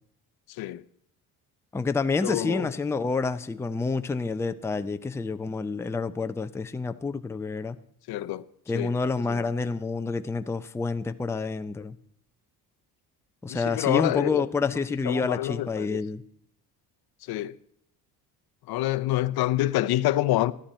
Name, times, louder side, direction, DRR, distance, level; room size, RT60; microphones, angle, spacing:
voice 1, 0.5-0.8 2.2-2.7 8.1-8.5 8.7-8.9 9.3-9.4 13.5-14.4 15.0-16.0 17.3-17.6 18.7-20.5, left 15 dB, 70° left, 0.7 m, -27 dB
voice 2, 1.7-7.8 8.7-12.0 13.4-16.2, left 4 dB, 5° left, 0.5 m, -28 dB
14.0 x 11.5 x 4.3 m
cardioid pair, 105°, 40 cm